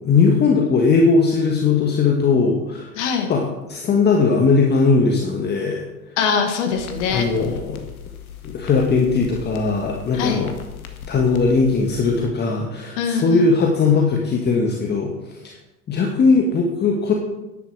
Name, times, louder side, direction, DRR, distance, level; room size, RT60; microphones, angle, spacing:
voice 1, 0.0-2.9 3.3-5.8 7.1-7.8 8.5-10.5 11.1-15.5 15.9-17.1, left 4 dB, 20° left, 0 dB, 1.6 m, -19 dB
voice 2, 3.0-3.3 6.2-7.3 10.1-10.5 13.0-13.5, left 6 dB, 50° left, 3 dB, 2.2 m, -22 dB
sound 1, 6.7-12.3, left 8 dB, 70° left, 1.8 m, -38 dB
11.5 x 10.5 x 4.8 m, 1.0 s
figure-of-eight pair, 90°, 45 cm